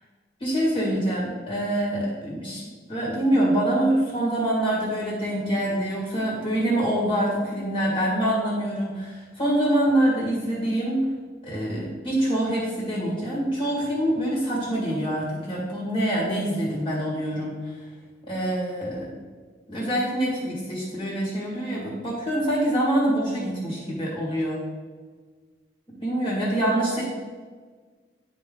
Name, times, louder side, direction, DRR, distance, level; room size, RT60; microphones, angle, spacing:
voice 1, 0.4-2.6 2.9-11.0 11.4-17.8 18.3-19.1 19.7-24.6 25.9-27.1, right 1 dB, 30° left, -7 dB, 2.0 m, -25 dB
9.8 x 3.8 x 3.9 m, 1.5 s
head